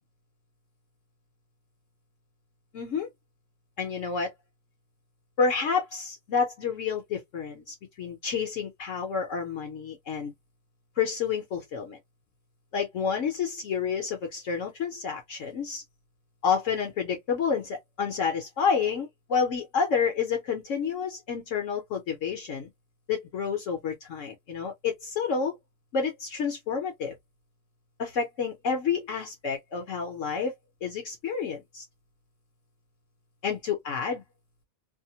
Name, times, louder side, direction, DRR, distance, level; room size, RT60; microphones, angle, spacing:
voice 1, 2.7-3.1 3.8-4.3 5.4-10.3 11.0-12.0 12.7-15.8 16.4-22.7 23.1-25.6 25.9-27.2 28.0-30.5 30.8-31.8 33.4-34.2, left 6 dB, 65° left, 1.1 m, -29 dB
2.8 x 2.0 x 2.8 m
omnidirectional pair, 1.6 m